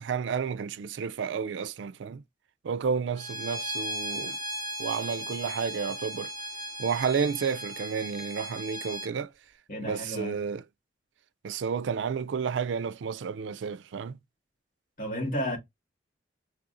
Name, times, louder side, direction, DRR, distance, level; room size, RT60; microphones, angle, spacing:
voice 1, 0.0-2.2 2.6-4.4 4.8-6.3 6.8-9.3 9.8-10.6 11.4-14.2, right 6 dB, 85° right, 0.4 m, -31 dB
Bowed string instrument, 3.2-9.1, equal, 20° left, 1.8 m, -37 dB
voice 2, 9.7-10.4 15.0-15.6, equal, 45° left, 1.9 m, -32 dB
4.8 x 3.2 x 2.5 m
head